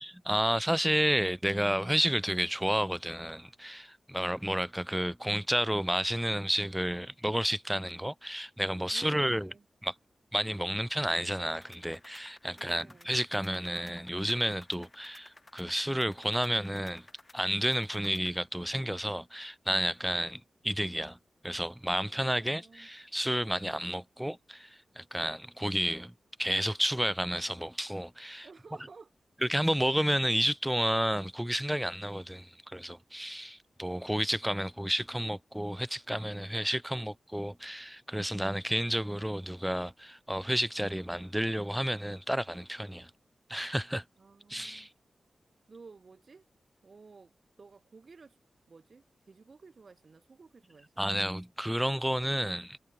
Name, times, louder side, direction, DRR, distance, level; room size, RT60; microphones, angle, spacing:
voice 1, 0.0-9.5 9.8-9.9 10.3-17.1 17.3-21.2 21.4-26.1 26.4-28.5 29.4-43.1 43.5-44.0 44.5-44.9 51.0-52.8, equal, 5° right, 0.5 m, -31 dB
voice 2, 8.9-9.6 12.5-13.2 22.1-22.9 28.4-29.1 44.2-44.9 45.7-46.4 46.8-47.3 47.6-48.4 48.7-51.3, right 4 dB, 50° right, 0.9 m, -54 dB
sound 1, 11.5-18.4, left 2 dB, 20° left, 1.0 m, -57 dB
wide cardioid pair, 110°, 0 cm